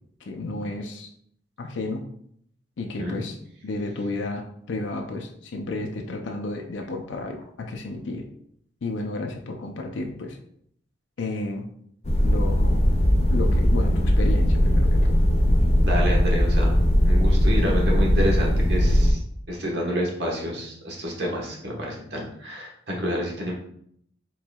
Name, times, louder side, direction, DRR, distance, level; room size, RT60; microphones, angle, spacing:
voice 1, 0.2-1.1 1.6-2.0 2.8-3.4 3.6-8.3 8.8-10.4 11.2-11.7 12.2-12.8 13.3-15.2, left 2 dB, 80° left, 3 dB, 0.5 m, -32 dB
sound 1, 12.0-19.1, equal, 35° left, 0.6 m, -19 dB
voice 2, 15.8-16.7 17.0-19.2 19.5-23.5, equal, 65° right, -2 dB, 1.2 m, -28 dB
4.5 x 3.9 x 2.3 m, 0.68 s
head